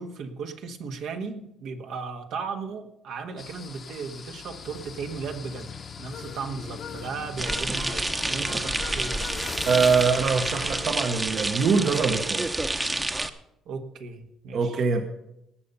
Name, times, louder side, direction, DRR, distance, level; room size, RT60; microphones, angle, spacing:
voice 1, 0.0-9.1 13.7-14.8, right 4 dB, 75° right, 1.5 m, -36 dB
sound 1, 3.4-10.9, left 5 dB, 45° left, 0.9 m, -40 dB
sound 2, 6.1-10.8, left 7 dB, 70° left, 1.6 m, -43 dB
sound 3, 7.4-13.3, right 2 dB, 15° right, 0.9 m, -29 dB
voice 2, 9.7-12.5 14.5-15.0, right 5 dB, 55° right, 1.1 m, -23 dB
18.5 x 6.9 x 5.5 m
cardioid pair, 95°, 0 cm